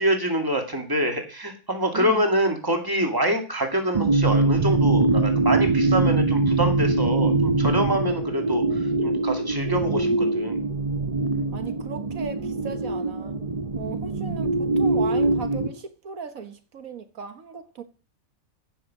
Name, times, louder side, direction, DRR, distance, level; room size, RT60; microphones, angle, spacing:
voice 1, 0.0-10.6, equal, 15° right, 2.3 m, -26 dB
sound 1, 3.9-15.7, right 3 dB, 30° right, 0.9 m, -23 dB
voice 2, 11.5-13.4 13.7-17.8, right 6 dB, 75° right, 1.7 m, -37 dB
16.0 x 5.8 x 7.5 m
omnidirectional pair, 1.5 m